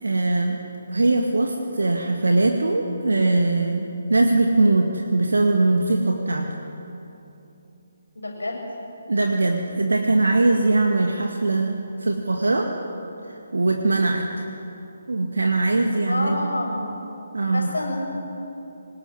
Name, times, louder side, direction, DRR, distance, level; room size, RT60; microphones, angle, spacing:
voice 1, 0.0-0.6 0.9-6.5 9.1-12.7 13.5-14.4 15.1-16.4 17.3-17.7, right 2 dB, 65° right, 3 dB, 2.0 m, -21 dB
voice 2, 8.1-8.6 16.1-16.8 17.5-18.1, left 1 dB, 70° left, 0 dB, 7.5 m, -28 dB
25.5 x 20.0 x 9.8 m, 2.9 s
figure-of-eight pair, 140°, 0 cm